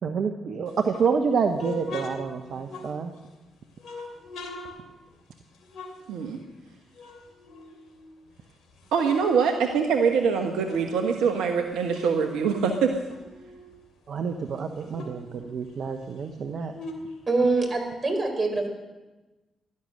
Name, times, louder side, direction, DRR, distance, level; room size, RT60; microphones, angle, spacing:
voice 1, 0.0-3.1 14.1-16.7, right 5 dB, 60° right, 6 dB, 1.1 m, -28 dB
sound 1, 0.7-3.3 3.8-6.7 6.9-8.3 8.7-11.0 11.2-13.8 14.2-14.3 14.5-17.9, left 2 dB, 70° left, 2.9 m, -42 dB
voice 2, 6.1-6.4 8.9-12.9, right 6 dB, 80° right, 4 dB, 1.2 m, -24 dB
voice 3, 17.3-18.7, right 3 dB, 40° right, 5 dB, 4.7 m, -24 dB
16.5 x 12.5 x 6.5 m, 1.1 s
hypercardioid pair, 45°, 0 cm